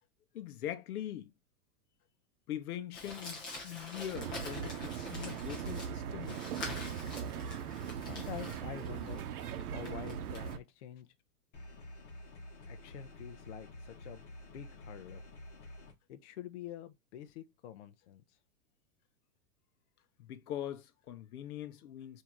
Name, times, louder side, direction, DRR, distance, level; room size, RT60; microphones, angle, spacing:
voice 1, 0.3-1.3 2.5-6.4 20.2-22.2, left 11 dB, 75° left, 0.8 m, -42 dB
Crumpling crinkling, 2.9-10.5, left 2 dB, 10° left, 0.7 m, -46 dB
sound 1, 4.1-10.6, right 8 dB, 75° right, 0.8 m, -40 dB
voice 2, 8.0-9.3 9.7-11.1 12.7-14.2 14.5-15.2 16.1-18.2, left 10 dB, 50° left, 0.5 m, -47 dB
sound 2, 11.5-15.9, left 1 dB, 30° left, 1.1 m, -50 dB
3.7 x 2.8 x 4.5 m
supercardioid pair, 175°, 45 cm